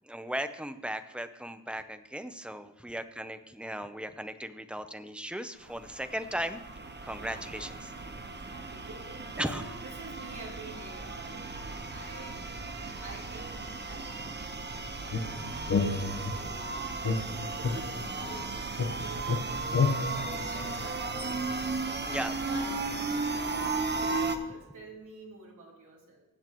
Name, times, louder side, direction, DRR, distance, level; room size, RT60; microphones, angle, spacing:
voice 1, 0.0-6.6 7.0-7.9 9.4-9.6 22.0-22.3, equal, 5° right, 9 dB, 0.6 m, -37 dB
sound 1, 5.6-24.4, right 3 dB, 30° right, 1.0 m, -35 dB
voice 2, 8.2-12.7 13.0-16.8 17.3-18.5 19.0-19.5 20.1-21.2 22.0-26.3, right 3 dB, 55° right, -3 dB, 3.6 m, -48 dB
sound 2, 15.1-16.6 17.0-18.5 18.8-21.3, left 4 dB, 45° left, 1.0 m, -31 dB
20.5 x 8.2 x 3.0 m, 1.1 s
wide cardioid pair, 145°, 37 cm